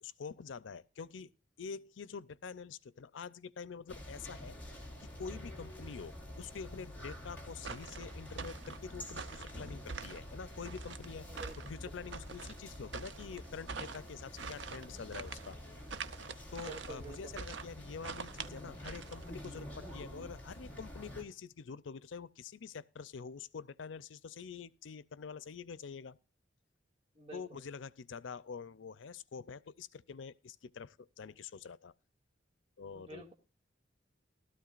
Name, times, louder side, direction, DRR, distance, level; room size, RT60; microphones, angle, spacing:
voice 1, 0.0-1.3 1.6-4.6 5.0-11.3 11.7-15.6 16.1-16.2 16.5-26.2 27.3-31.9 32.8-33.2, left 5 dB, 90° left, 0.5 m, -46 dB
sound 1, 3.9-21.2, left 1 dB, 10° left, 2.9 m, -48 dB
sound 2, 7.6-19.6, right 5 dB, 75° right, 0.7 m, -46 dB
voice 2, 16.6-17.4 27.2-27.6 32.9-33.3, right 3 dB, 35° right, 2.0 m, -48 dB
16.0 x 13.0 x 2.5 m
head